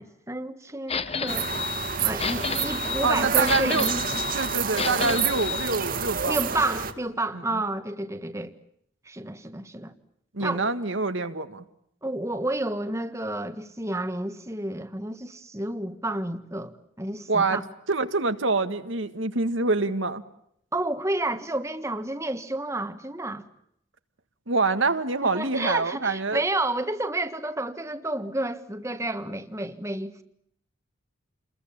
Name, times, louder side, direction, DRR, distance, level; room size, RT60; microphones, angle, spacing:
voice 1, 0.0-1.5 2.0-4.0 6.3-8.5 9.0-9.9 10.4-10.7 12.0-17.6 20.7-23.4 25.2-30.2, right 2 dB, 15° right, 1.5 m, -30 dB
sound 1, 0.9-5.7, left 6 dB, 30° left, 1.0 m, -31 dB
sound 2, 1.3-6.9, right 7 dB, 45° right, 2.0 m, -28 dB
voice 2, 3.0-3.9 4.3-6.4 7.3-7.6 10.3-11.7 17.3-17.6 17.9-20.2 24.5-26.4, right 3 dB, 70° right, 1.7 m, -26 dB
29.5 x 21.5 x 8.7 m
head